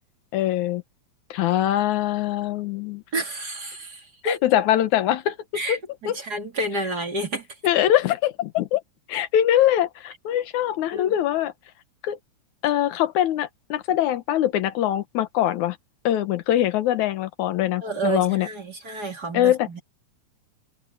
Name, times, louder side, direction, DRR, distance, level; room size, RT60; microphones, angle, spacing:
voice 1, 0.3-0.8 1.3-3.0 4.2-5.8 6.1-6.2 7.6-8.8 9.1-11.5 12.0-12.2 12.6-15.8 16.0-18.5 19.3-19.7, left 12 dB, 80° left, 2.5 m, -23 dB
voice 2, 3.1-4.4 5.5-5.8 6.0-7.5 10.9-11.2 17.8-19.8, right 2 dB, 35° right, 3.1 m, -30 dB
omnidirectional pair, 3.4 m